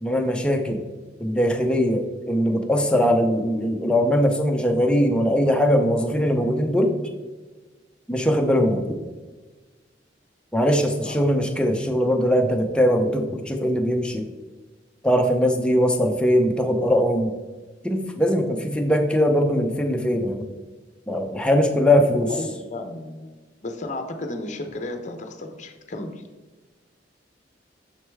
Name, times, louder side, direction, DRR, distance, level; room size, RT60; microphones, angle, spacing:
voice 1, 0.0-0.8 1.2-7.0 8.1-9.0 10.5-14.2 15.0-17.3 17.8-20.5 21.1-22.3, equal, 5° left, 3 dB, 0.6 m, -21 dB
voice 2, 22.3-23.4 23.6-26.2, left 2 dB, 40° left, 5 dB, 0.7 m, -33 dB
6.4 x 6.4 x 3.5 m, 1.3 s
head